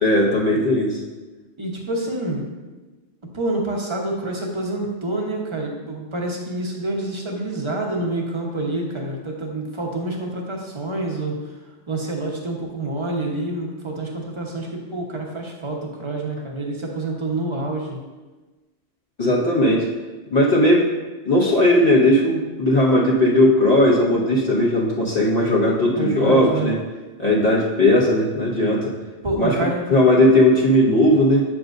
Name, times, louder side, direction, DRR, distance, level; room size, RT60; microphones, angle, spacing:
voice 1, 0.0-1.0 19.2-19.9 20.3-20.8 21.2-26.8 27.2-28.9 29.3-29.6 29.9-31.4, left 1 dB, 35° left, -4 dB, 1.4 m, -17 dB
voice 2, 1.6-2.4 3.2-11.3 11.9-18.0 25.9-26.7 29.2-29.8, right 2 dB, 25° right, 0 dB, 1.1 m, -27 dB
8.6 x 7.4 x 2.6 m, 1.2 s
omnidirectional pair, 1.2 m